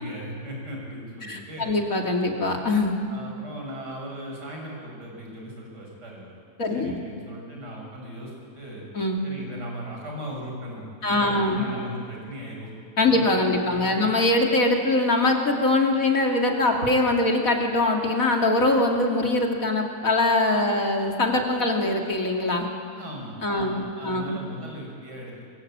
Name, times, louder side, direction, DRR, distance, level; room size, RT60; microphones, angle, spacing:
voice 1, 0.0-1.8 3.1-6.3 6.7-8.8 9.2-12.7 13.1-13.2 13.6-14.1 23.0-25.4, equal, 80° right, -1 dB, 6.6 m, -38 dB
voice 2, 1.2-3.0 6.6-7.0 8.9-9.2 11.0-11.6 13.0-22.7 23.4-24.4, left 2 dB, 55° left, 2 dB, 3.0 m, -23 dB
23.5 x 23.0 x 8.7 m, 2.3 s
omnidirectional pair, 1.8 m